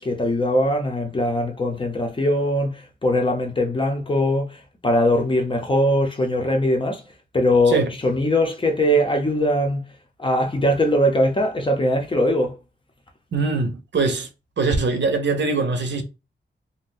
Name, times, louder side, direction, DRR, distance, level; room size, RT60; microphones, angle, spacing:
voice 1, 0.0-4.6 4.8-7.0 7.3-9.8 10.2-12.5, left 1 dB, 25° left, 0.7 m, -21 dB
voice 2, 13.3-14.3 14.6-16.0, right 3 dB, 70° right, 0.7 m, -22 dB
2.7 x 2.2 x 3.9 m
wide cardioid pair, 165°, 20 cm